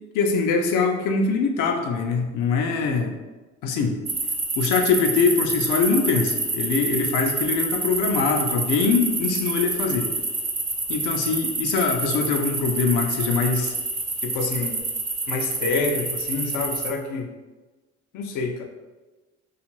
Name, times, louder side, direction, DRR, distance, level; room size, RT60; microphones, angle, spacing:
voice 1, 0.1-3.2 3.6-4.0 4.6-10.1 10.9-13.7 14.2-14.8 15.3-17.3 18.1-18.6, left 4 dB, 90° left, 4 dB, 0.5 m, -23 dB
sound 1, 4.1-16.9, right 3 dB, 20° right, 0.4 m, -27 dB
2.5 x 2.4 x 3.0 m, 1.2 s
cardioid pair, 90°, 30 cm